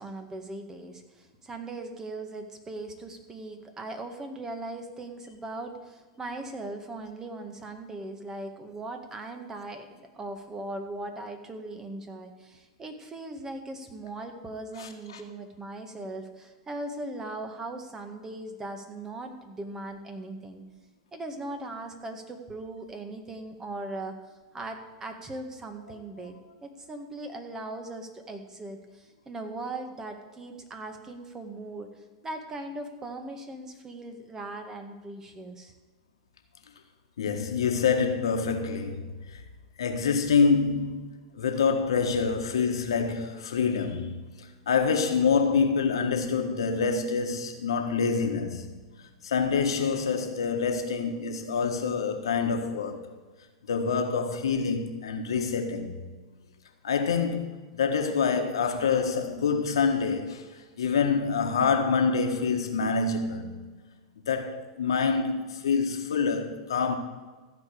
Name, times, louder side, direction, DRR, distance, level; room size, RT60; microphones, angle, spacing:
voice 1, 0.0-20.6 21.1-24.2 24.5-35.7, right 2 dB, 20° right, 1.8 m, -39 dB
voice 2, 14.8-15.2 37.2-39.4 39.8-48.7 49.2-53.1 53.7-56.0 56.8-63.6 64.3-67.0, left 5 dB, 80° left, 1.6 m, -26 dB
15.0 x 5.2 x 8.5 m
hypercardioid pair, 100°, 3 cm